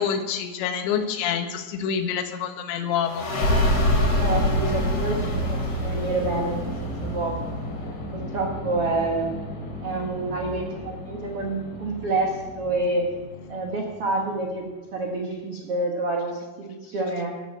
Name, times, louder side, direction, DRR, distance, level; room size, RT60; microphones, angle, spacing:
voice 1, 0.0-3.3, left 7 dB, 85° left, 7 dB, 3.3 m, -27 dB
sound 1, 3.0-14.3, left 1 dB, 50° left, 3.7 m, -27 dB
voice 2, 4.2-7.5 8.1-9.4 9.8-13.1 13.5-17.3, right 2 dB, 70° right, 0 dB, 1.3 m, -28 dB
15.0 x 7.7 x 7.3 m, 1.2 s
omnidirectional pair, 5.0 m